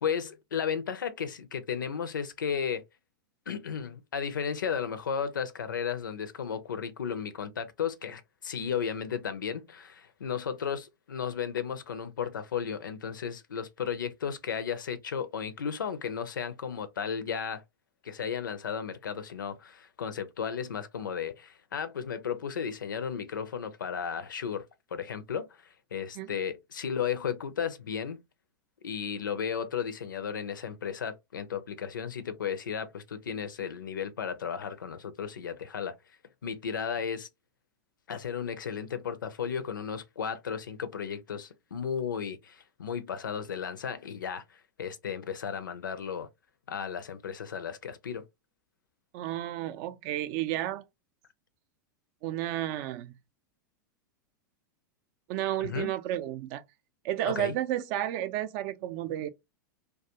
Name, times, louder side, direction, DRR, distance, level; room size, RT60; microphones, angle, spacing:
voice 1, 0.0-2.8 3.5-17.6 18.0-24.6 24.9-28.2 28.8-35.9 36.4-37.3 38.1-46.3 46.7-48.3 55.6-55.9 57.2-57.6, left 7 dB, 85° left, 0.5 m, -34 dB
voice 2, 49.1-50.8 52.2-53.1 55.3-56.6 57.0-59.3, right 13 dB, 50° right, 0.4 m, -32 dB
2.3 x 2.2 x 2.8 m
hypercardioid pair, 100°, 10 cm